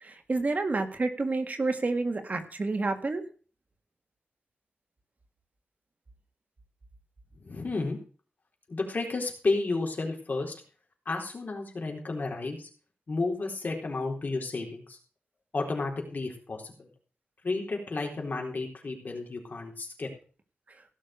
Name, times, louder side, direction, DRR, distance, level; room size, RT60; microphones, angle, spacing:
voice 1, 0.0-3.2, right 3 dB, 45° right, 6 dB, 1.7 m, -29 dB
voice 2, 7.4-8.0 8.7-10.5 11.1-12.7 13.1-15.0 15.5-16.9 17.4-20.1, left 3 dB, 50° left, 1 dB, 3.9 m, -32 dB
16.5 x 6.5 x 6.5 m, 0.40 s
wide cardioid pair, 130°, 4 cm